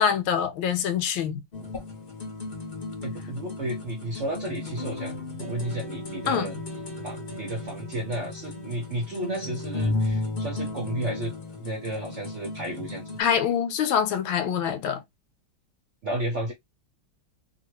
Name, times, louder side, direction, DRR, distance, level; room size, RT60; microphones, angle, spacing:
voice 1, 0.0-1.4 6.3-6.5 13.2-15.0, left 8 dB, 85° left, 1.4 m, -25 dB
sound 1, 1.5-13.2, left 2 dB, 55° left, 0.6 m, -34 dB
voice 2, 3.0-6.6 7.0-11.3 11.6-13.0 16.0-16.5, right 1 dB, 60° right, 0.7 m, -32 dB
2.8 x 2.7 x 2.9 m
omnidirectional pair, 2.2 m